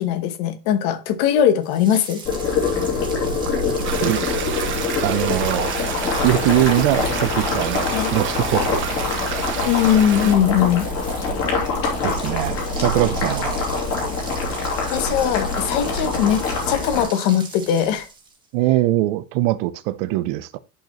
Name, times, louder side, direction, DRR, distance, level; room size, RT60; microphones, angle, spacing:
voice 1, 0.0-2.2 7.9-8.1 9.6-10.9 14.9-16.4 16.7-18.1, left 9 dB, 55° left, 1.2 m, -20 dB
sound 1, 1.6-18.4, right 4 dB, 10° right, 1.4 m, -40 dB
Boiling, 2.2-17.0, left 3 dB, 35° left, 2.7 m, -24 dB
voice 2, 3.5-4.3 5.0-5.7 6.2-9.0 12.0-13.6 18.5-20.6, right 16 dB, 60° right, 0.7 m, -22 dB
sound 2, 3.8-10.3, right 8 dB, 30° right, 1.1 m, -30 dB
10.5 x 4.4 x 3.0 m
cardioid pair, 180°, 40 cm